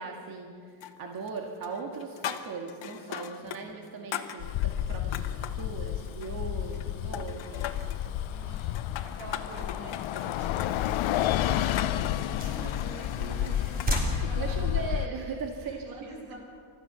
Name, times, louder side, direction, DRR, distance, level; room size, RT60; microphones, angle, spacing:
voice 1, 0.0-7.6 8.0-8.1 12.3-12.5 13.2-16.3, right 4 dB, 50° right, 1 dB, 2.0 m, -39 dB
sound 1, 0.8-1.4 1.6-3.6 3.9-5.7 6.1-6.9 7.1-8.0 8.6-14.1, left 10 dB, 70° left, 1.5 m, -39 dB
voice 2, 3.4-3.8 7.5-8.0 8.3-14.0 14.3-14.4 15.6-16.4, right 2 dB, 85° right, 0 dB, 6.8 m, -46 dB
Bus, 4.4-15.1, left 12 dB, 85° left, 0.8 m, -31 dB
sound 2, 5.3-15.4, right 1 dB, 20° right, 3.7 m, -40 dB
29.5 x 14.0 x 7.0 m, 2.2 s
cardioid pair, 150°, 46 cm